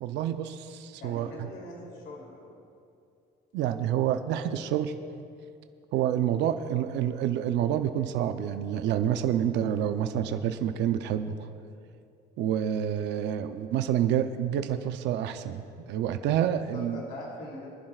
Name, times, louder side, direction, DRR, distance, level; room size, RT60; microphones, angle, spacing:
voice 1, 0.0-1.5 3.5-4.9 5.9-11.5 12.4-17.0, right 10 dB, 75° right, 8 dB, 0.7 m, -28 dB
voice 2, 1.0-2.5 16.7-17.7, left 2 dB, 65° left, -3 dB, 3.1 m, -42 dB
25.0 x 11.0 x 2.4 m, 2.5 s
cardioid pair, 135°, 18 cm